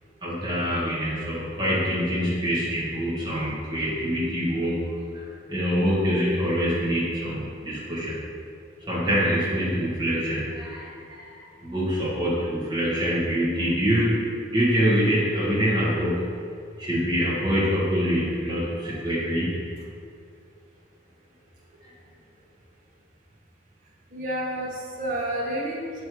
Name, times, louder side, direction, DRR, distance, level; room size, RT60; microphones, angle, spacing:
voice 1, 0.2-8.2 8.9-16.3 16.8-19.6 21.8-21.9, equal, 25° right, -8 dB, 1.3 m, -25 dB
voice 2, 24.1-26.0, right 1 dB, 45° right, -5 dB, 1.0 m, -30 dB
6.6 x 3.2 x 4.6 m, 2.3 s
head